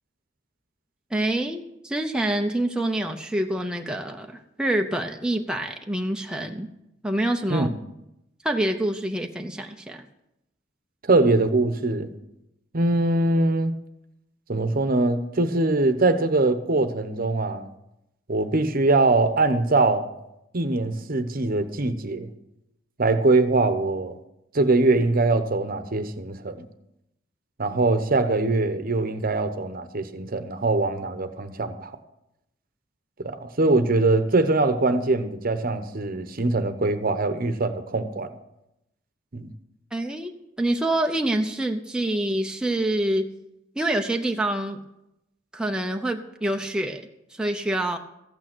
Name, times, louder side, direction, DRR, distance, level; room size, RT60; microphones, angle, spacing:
voice 1, 1.1-6.7 7.0-7.7 8.4-10.0 39.9-43.3 43.8-44.8 45.5-48.0, right 1 dB, 5° right, 0.7 m, -26 dB
voice 2, 11.1-12.1 12.7-13.7 14.5-17.6 18.3-20.1 20.5-22.3 23.0-24.2 24.5-26.7 27.6-31.9 33.2-38.3 39.3-39.5, right 2 dB, 50° right, 0.9 m, -22 dB
14.5 x 8.9 x 6.1 m
head